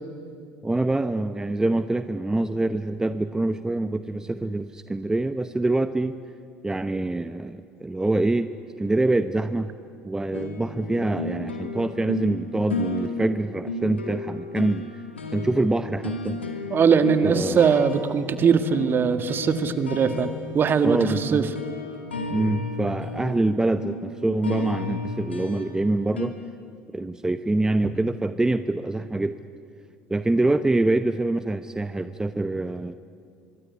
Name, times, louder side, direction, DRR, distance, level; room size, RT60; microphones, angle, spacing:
voice 1, 0.6-6.2 6.6-9.7 10.0-14.9 15.3-16.4 17.2-17.7 20.8-21.5 22.3-26.3 26.9-29.4 30.1-32.9, right 2 dB, 10° right, 11 dB, 0.9 m, -25 dB
sound 1, 10.3-26.3, left 3 dB, 90° left, 2.4 m, -34 dB
voice 2, 16.7-21.5, right 6 dB, 40° right, 10 dB, 1.9 m, -21 dB
24.5 x 24.0 x 9.7 m, 2.5 s
figure-of-eight pair, 65°, 6 cm